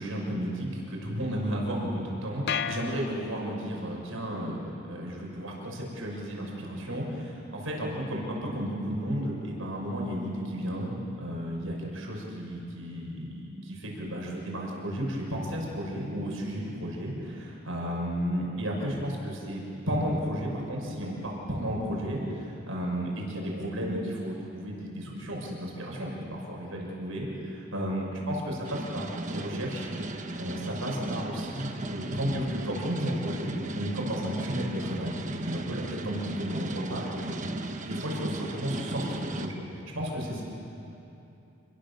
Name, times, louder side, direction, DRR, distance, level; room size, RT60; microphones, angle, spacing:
voice 1, 0.0-4.6 4.9-29.9 30.4-37.4 37.8-40.4, equal, 70° right, -2 dB, 6.2 m, -33 dB
sound 1, 2.5-3.8, left 7 dB, 55° left, 0.7 m, -34 dB
sound 2, 28.6-39.5, right 2 dB, 35° right, 1.2 m, -36 dB
28.5 x 21.0 x 7.0 m, 2.8 s
head